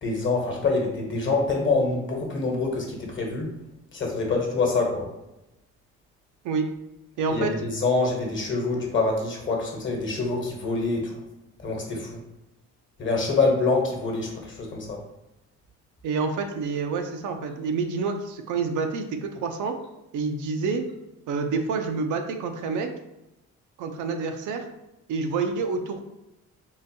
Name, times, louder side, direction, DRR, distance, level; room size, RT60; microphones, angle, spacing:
voice 1, 0.0-3.5 3.9-5.1 7.3-11.2 11.6-12.2 13.0-15.0, left 3 dB, 40° left, 0 dB, 1.0 m, -25 dB
voice 2, 7.2-7.5 16.0-19.8 20.1-20.8 21.3-22.9 23.8-24.7 25.1-26.0, right 4 dB, 80° right, 5 dB, 0.5 m, -28 dB
3.8 x 2.5 x 2.6 m, 0.91 s
cardioid pair, 90°, 30 cm